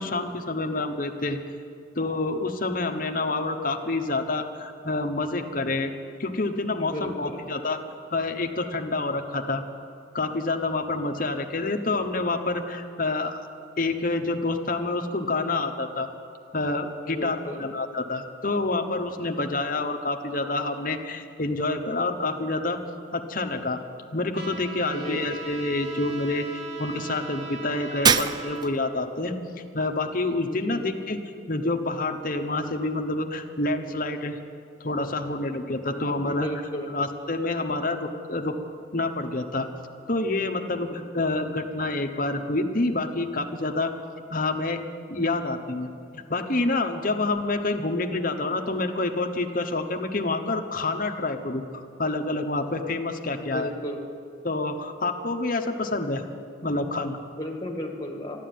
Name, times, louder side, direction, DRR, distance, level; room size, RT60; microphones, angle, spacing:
voice 1, 0.0-1.4 1.9-5.9 6.2-7.8 8.1-9.6 10.1-13.4 13.8-16.1 16.5-22.8 23.1-23.8 24.1-26.5 26.8-29.3 29.7-31.2 31.5-34.4 34.8-36.5 36.9-38.6 38.9-39.7 40.1-43.9 44.3-44.8 45.1-53.7 54.4-56.2 56.6-57.2, left 2 dB, 45° left, 5 dB, 1.1 m, -28 dB
voice 2, 6.8-7.4 17.0-17.7 24.9-25.3 30.5-30.8 36.2-36.9 53.4-54.0 57.3-58.4, equal, 20° left, 1 dB, 1.8 m, -34 dB
Trumpet, 24.3-28.7, right 3 dB, 55° right, 1.8 m, -39 dB
Shatter, 28.1-28.9, right 6 dB, 20° right, 0.3 m, -22 dB
12.5 x 12.0 x 9.3 m, 2.4 s
head